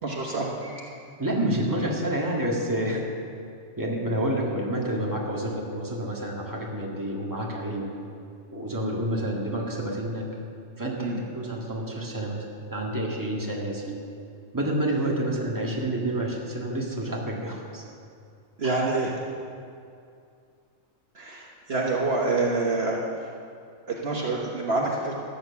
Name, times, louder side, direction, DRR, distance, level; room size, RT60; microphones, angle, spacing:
voice 1, 0.0-1.1 11.0-11.2 18.6-19.1 21.1-23.0 23.9-25.1, right 3 dB, 55° right, -2 dB, 1.4 m, -27 dB
voice 2, 1.2-3.1 3.8-8.0 8.5-10.3 10.8-14.0 14.5-17.8 18.6-18.8, right 1 dB, 15° right, -2 dB, 1.9 m, -29 dB
13.5 x 9.3 x 7.0 m, 2.4 s
omnidirectional pair, 1.3 m